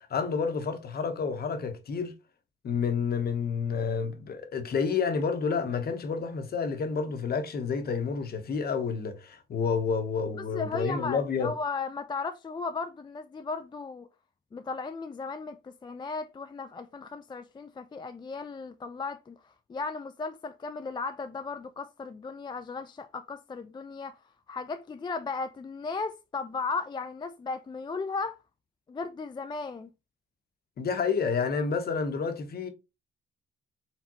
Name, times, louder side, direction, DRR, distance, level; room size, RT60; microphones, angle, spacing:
voice 1, 0.1-2.1 2.6-11.5 30.8-32.7, left 5 dB, 50° left, 1.0 m, -29 dB
voice 2, 10.4-14.1 14.5-19.4 19.7-24.2 24.5-28.4 28.9-29.9, left 4 dB, 25° left, 0.4 m, -36 dB
4.6 x 3.5 x 2.9 m
cardioid pair, 90°, 20 cm